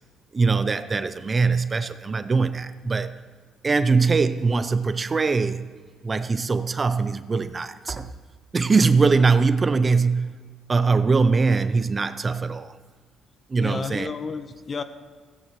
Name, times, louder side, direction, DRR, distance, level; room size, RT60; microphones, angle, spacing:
voice 1, 0.3-3.1 3.6-5.7 6.0-8.1 8.5-10.4 10.7-12.7 13.5-14.1, right 4 dB, 30° right, 0.5 m, -22 dB
voice 2, 13.6-14.8, left 5 dB, 40° left, 0.8 m, -31 dB
16.0 x 9.0 x 3.1 m
cardioid pair, 90°, 0 cm